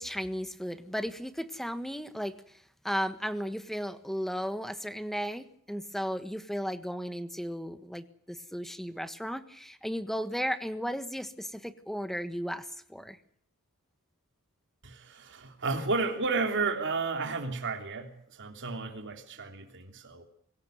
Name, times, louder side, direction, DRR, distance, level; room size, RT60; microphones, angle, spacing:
voice 1, 0.0-2.3 2.8-13.2, equal, ahead, 11 dB, 1.4 m, -35 dB
voice 2, 14.8-20.2, right 3 dB, 55° right, 4 dB, 3.3 m, -32 dB
24.0 x 17.0 x 9.1 m, 0.66 s
head